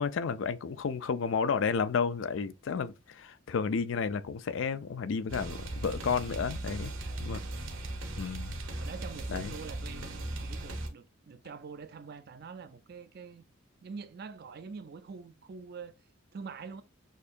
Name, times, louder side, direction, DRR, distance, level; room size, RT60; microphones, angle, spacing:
voice 1, 0.0-6.9 7.2-7.4 8.2-8.5 9.3-9.5, left 5 dB, 65° left, 0.4 m, -31 dB
sound 1, 5.3-10.9, right 1 dB, 70° right, 1.0 m, -38 dB
voice 2, 7.0-7.5 8.8-13.4 13.8-15.9 16.3-16.8, right 5 dB, 50° right, 0.4 m, -45 dB
6.5 x 2.8 x 2.5 m
head